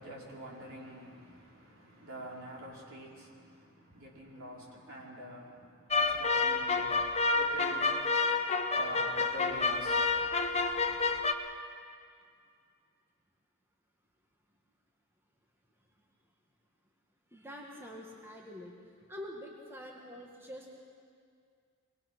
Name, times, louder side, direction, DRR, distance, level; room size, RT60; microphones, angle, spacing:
voice 1, 0.0-7.0 7.3-7.9 8.7-10.1, equal, 65° right, -3 dB, 5.1 m, -46 dB
sound 1, 5.9-11.3, left 3 dB, 30° left, 1.0 m, -29 dB
voice 2, 17.3-18.7 19.1-20.8, left 1 dB, 10° right, -1 dB, 2.0 m, -46 dB
25.0 x 21.5 x 6.2 m, 2.2 s
head